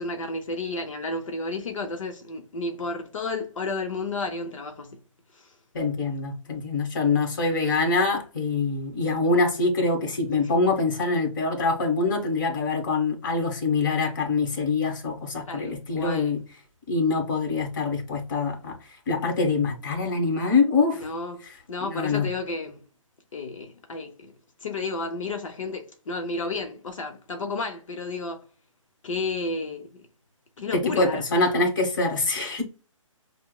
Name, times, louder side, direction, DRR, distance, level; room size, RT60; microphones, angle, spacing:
voice 1, 0.0-5.0 5.3-5.6 10.4-10.5 15.5-16.4 21.0-21.4 21.7-22.9 23.3-24.3 24.6-28.4 29.0-30.1 30.6-31.2, left 3 dB, 70° left, 0.7 m, -32 dB
voice 2, 5.7-16.4 16.9-18.8 19.1-21.1 21.8-22.3 30.7-32.6, left 3 dB, 35° left, 1.2 m, -24 dB
5.6 x 2.1 x 2.2 m
hypercardioid pair, 170°, 17 cm